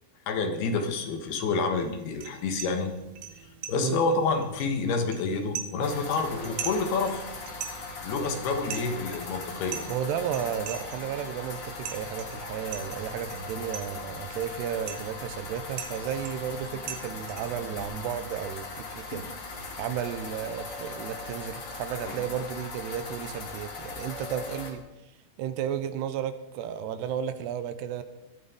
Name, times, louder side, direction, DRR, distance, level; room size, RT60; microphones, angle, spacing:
voice 1, 0.3-2.9 3.7-7.3 8.0-9.9, left 4 dB, 70° left, 5 dB, 3.3 m, -28 dB
sound 1, 1.7-17.8, right 8 dB, 65° right, 2.3 m, -43 dB
wool factory hamburg, 5.8-24.7, left 3 dB, 40° left, 2.3 m, -39 dB
voice 2, 9.9-19.3 19.8-24.8 25.4-28.0, right 9 dB, 85° right, 11 dB, 2.9 m, -33 dB
18.5 x 12.5 x 3.8 m, 0.97 s
omnidirectional pair, 4.9 m